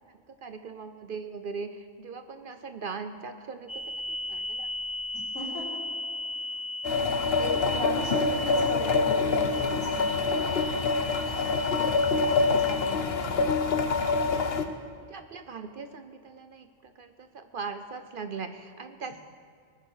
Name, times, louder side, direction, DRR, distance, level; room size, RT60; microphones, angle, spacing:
voice 1, 0.1-3.8 4.1-4.7 6.9-7.1 11.5-11.7 14.3-14.8 15.1-19.2, right 5 dB, 55° right, 9 dB, 0.7 m, -40 dB
sound 1, 3.7-13.0, left 1 dB, 15° left, 0.5 m, -37 dB
voice 2, 5.3-5.8 6.5-6.6 6.9-10.9 12.2-13.7, left 1 dB, 85° left, -6 dB, 4.2 m, -37 dB
sound 2, 6.8-14.6, left 4 dB, 55° left, 1.1 m, -26 dB
19.5 x 9.8 x 4.8 m, 2.1 s
omnidirectional pair, 1.3 m